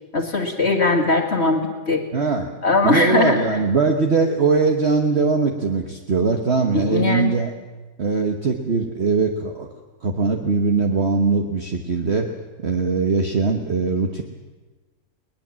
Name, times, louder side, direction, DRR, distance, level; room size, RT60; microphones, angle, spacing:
voice 1, 0.1-2.0 2.6-3.4 6.7-7.4, left 3 dB, 40° left, 3 dB, 2.1 m, -20 dB
voice 2, 2.1-2.5 2.8-7.5 8.0-9.7 10.0-12.3 12.6-14.2, right 4 dB, 45° right, 3 dB, 1.5 m, -21 dB
21.0 x 20.0 x 7.5 m, 1.2 s
omnidirectional pair, 1.7 m